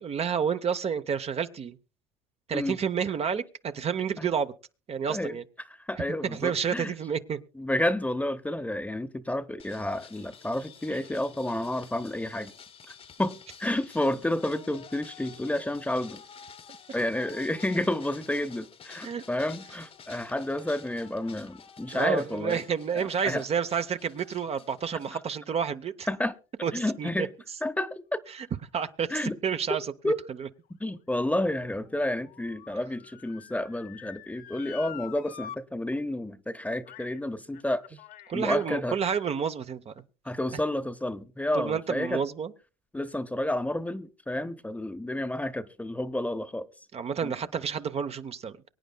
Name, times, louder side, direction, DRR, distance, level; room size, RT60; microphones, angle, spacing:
voice 1, 0.0-1.8 2.5-4.5 4.9-5.4 6.2-7.4 19.0-19.2 21.9-26.1 26.6-27.3 28.3-28.5 28.7-29.1 29.4-30.1 30.4-30.5 38.3-39.9 41.5-42.5 46.9-48.6, right 7 dB, 35° right, 0.7 m, -30 dB
voice 2, 5.8-6.9 7.6-12.5 13.2-16.2 16.9-22.6 22.9-23.4 25.1-25.2 26.1-26.3 26.7-27.3 27.6-28.2 29.1-29.4 30.0-30.2 30.8-38.0 38.3-39.0 40.3-42.2 42.9-46.7 47.2-47.3, left 1 dB, 10° left, 0.7 m, -30 dB
sound 1, 9.6-25.1, left 7 dB, 35° left, 1.0 m, -50 dB
Motor vehicle (road) / Siren, 30.4-35.6 35.9-36.0 36.9-37.2 37.5-39.2 39.9-40.0, left 10 dB, 55° left, 0.6 m, -47 dB
23.5 x 9.1 x 2.2 m
supercardioid pair, 90°, 18 cm